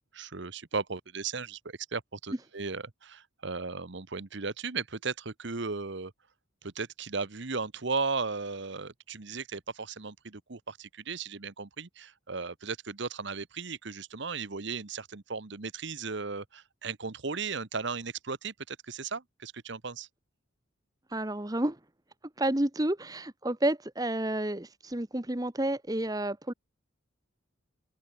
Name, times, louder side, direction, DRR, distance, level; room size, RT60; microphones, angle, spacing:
voice 1, 0.1-6.1 6.6-20.1, right 4 dB, 60° right, 1.1 m, -36 dB
voice 2, 21.1-21.8 22.4-26.5, right 1 dB, 15° right, 1.0 m, -30 dB
open air
head